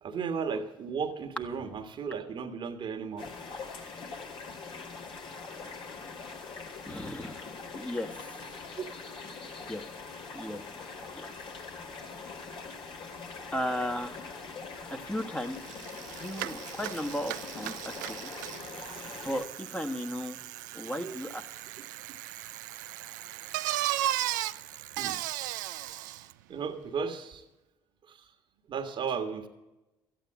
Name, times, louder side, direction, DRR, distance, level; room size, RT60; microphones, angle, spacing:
voice 1, 0.0-3.3 8.8-8.9 21.0-21.2 25.0-25.2 26.5-27.4 28.1-28.3 28.7-29.5, right 6 dB, 55° right, 7 dB, 1.5 m, -35 dB
sound 1, 3.2-19.4, left 4 dB, 60° left, 2.5 m, -43 dB
voice 2, 6.9-7.4 7.7-8.1 9.7-9.8 10.3-10.6 11.2-11.3 13.5-14.1 14.9-15.6 16.2-17.7 18.0-18.3 19.2-20.4 20.7-21.4, left 1 dB, 10° left, 5 dB, 1.5 m, -35 dB
Bicycle, 15.2-15.3 15.5-26.3, right 14 dB, 85° right, 0.4 m, -36 dB
13.5 x 9.1 x 7.4 m, 1.0 s
hypercardioid pair, 55°, 10 cm